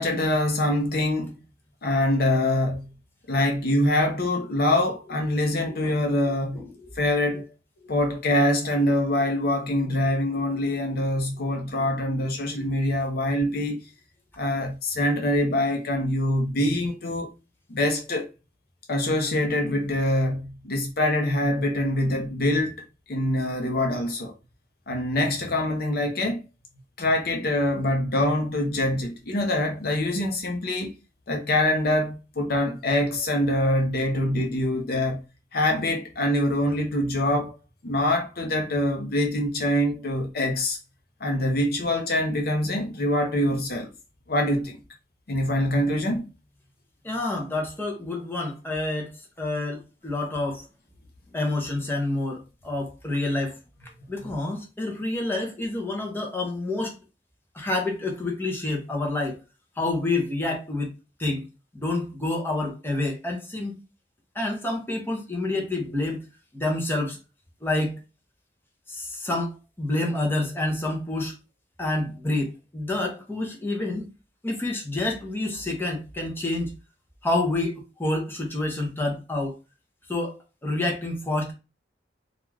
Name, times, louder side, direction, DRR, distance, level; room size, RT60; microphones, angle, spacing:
voice 1, 0.0-1.3 1.8-2.9 3.3-7.5 7.9-13.8 14.4-17.3 17.7-18.3 18.9-22.7 23.1-24.3 24.9-26.4 27.0-30.9 31.3-35.2 35.5-37.5 37.8-40.8 41.2-43.9 44.3-44.8 45.3-46.2, left 1 dB, 55° left, 0.6 m, -24 dB
voice 2, 47.0-50.7 51.3-53.6 54.1-56.9 57.5-59.4 59.8-60.9 61.2-61.4 61.7-63.8 64.3-66.2 66.5-67.2 67.6-68.0 68.9-71.4 71.8-74.1 74.4-76.7 77.2-79.6 80.1-81.5, left 2 dB, 10° left, 0.6 m, -28 dB
2.4 x 2.3 x 3.1 m
head